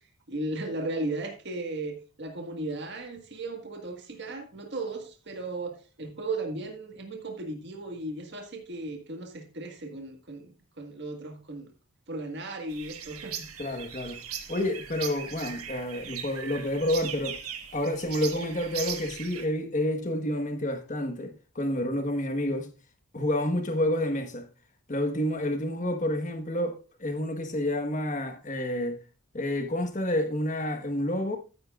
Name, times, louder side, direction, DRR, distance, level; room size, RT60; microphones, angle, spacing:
voice 1, 0.3-11.7 12.1-13.8, right 2 dB, 50° right, 1.8 m, -36 dB
sound 1, 12.7-19.5, right 8 dB, 85° right, 1.5 m, -39 dB
voice 2, 13.6-14.2 14.5-17.4 17.7-22.7 23.1-24.5 24.9-29.0 29.3-31.4, left 1 dB, 35° left, 1.4 m, -29 dB
14.0 x 9.3 x 2.5 m
head